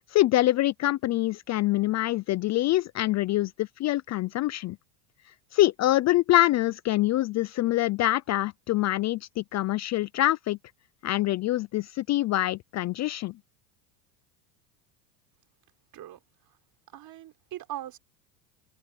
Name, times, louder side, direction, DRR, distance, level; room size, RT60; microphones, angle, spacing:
voice 1, 0.0-4.8 5.5-10.6 11.0-13.3, left 15 dB, 35° left, 0.5 m, -25 dB
voice 2, 16.9-18.0, right 13 dB, 45° right, 4.1 m, -40 dB
supercardioid pair, 110°, 50 cm